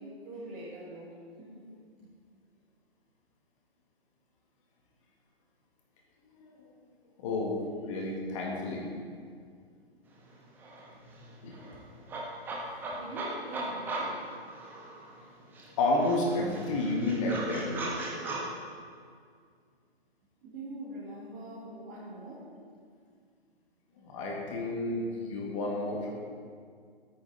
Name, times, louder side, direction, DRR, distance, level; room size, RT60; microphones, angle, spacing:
voice 1, 0.0-1.7 2.0-2.1 12.9-14.2 20.4-22.5, right 1 dB, 20° right, -9 dB, 2.1 m, -43 dB
voice 2, 7.2-7.6 7.9-8.8 11.4-11.6 15.8-18.0 24.0-26.1, left 2 dB, 30° left, -2 dB, 1.7 m, -30 dB
sound 1, 10.2-10.3 10.6-15.2 15.5-18.4, right 3 dB, 5° right, 0.7 m, -39 dB
13.5 x 9.2 x 4.0 m, 2.1 s
figure-of-eight pair, 130°, 31 cm